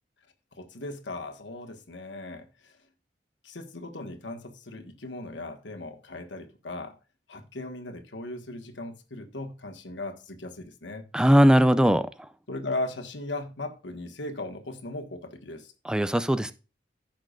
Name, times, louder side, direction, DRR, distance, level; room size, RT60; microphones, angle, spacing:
voice 1, 0.5-2.8 3.4-7.0 7.3-11.0 12.5-15.7, left 2 dB, 90° left, 1.4 m, -37 dB
voice 2, 11.1-12.1 15.8-16.5, equal, 5° right, 0.4 m, -19 dB
15.5 x 5.9 x 2.4 m
head